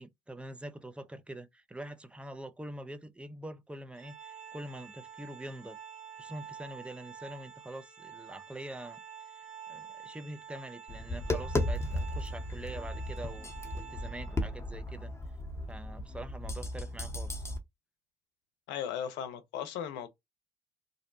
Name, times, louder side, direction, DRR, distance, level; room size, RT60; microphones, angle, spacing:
voice 1, 0.0-5.8 6.2-9.0 9.7-15.1 15.7-17.5, right 1 dB, 5° right, 0.4 m, -44 dB
Organ, 3.9-14.6, right 8 dB, 85° right, 0.8 m, -48 dB
Tap, 10.9-17.6, left 1 dB, 15° left, 0.8 m, -35 dB
voice 2, 18.7-20.1, left 9 dB, 70° left, 0.6 m, -37 dB
2.6 x 2.0 x 2.4 m
hypercardioid pair, 60°, 19 cm